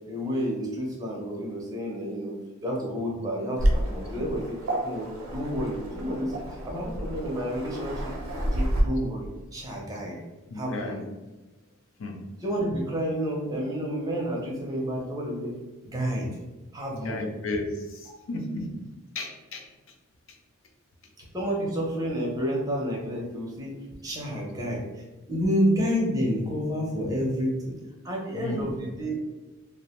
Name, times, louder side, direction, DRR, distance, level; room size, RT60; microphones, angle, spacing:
voice 1, 0.0-2.3 2.6-4.6 4.8-8.1 8.4-10.2 10.5-11.0 12.4-15.5 15.8-16.3 16.7-17.3 21.2-24.8 25.3-27.7 28.0-29.2, equal, 15° right, -2 dB, 0.5 m, -30 dB
Waves surf, 3.6-8.8, right 1 dB, 70° right, 0.5 m, -30 dB
voice 2, 10.5-11.0 12.0-12.2 17.0-19.9 20.3-20.4 28.3-28.7, left 2 dB, 60° left, 3 dB, 0.4 m, -34 dB
2.4 x 2.1 x 2.9 m, 1.1 s
head